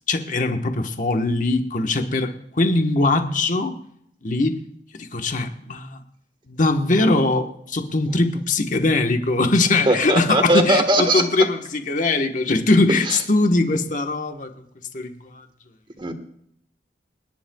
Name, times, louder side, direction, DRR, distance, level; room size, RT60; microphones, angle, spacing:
voice 1, 0.1-3.8 4.2-4.6 5.0-6.0 6.5-14.5 14.9-15.5, left 2 dB, 45° left, 5 dB, 1.2 m, -21 dB
voice 2, 9.9-11.2 16.0-16.1, right 1 dB, 25° right, 6 dB, 1.4 m, -19 dB
29.0 x 10.5 x 2.3 m, 0.70 s
head